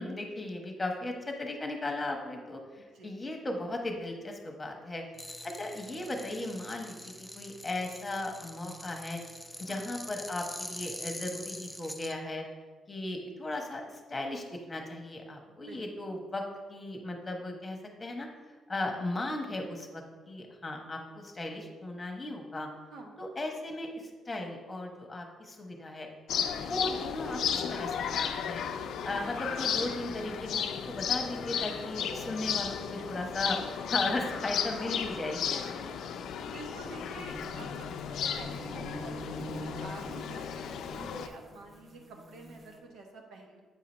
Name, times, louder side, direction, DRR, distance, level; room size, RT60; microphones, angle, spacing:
voice 1, 0.0-5.0 5.4-9.2 9.6-12.4 12.9-16.4 16.7-18.3 18.7-22.7 23.2-26.1 26.6-28.6 29.0-35.9, left 2 dB, 20° left, 2 dB, 1.1 m, -37 dB
sound 1, 5.1-12.1, left 1 dB, 5° left, 0.4 m, -44 dB
voice 2, 15.7-16.1 22.9-23.2 32.9-33.2 36.4-43.6, right 3 dB, 80° right, 2 dB, 1.0 m, -48 dB
sound 2, 26.3-41.3, left 7 dB, 75° left, 0.4 m, -34 dB
sound 3, 37.2-42.8, left 1 dB, 40° right, 1.1 m, -45 dB
8.0 x 2.8 x 5.3 m, 1.4 s
cardioid pair, 90°, 0 cm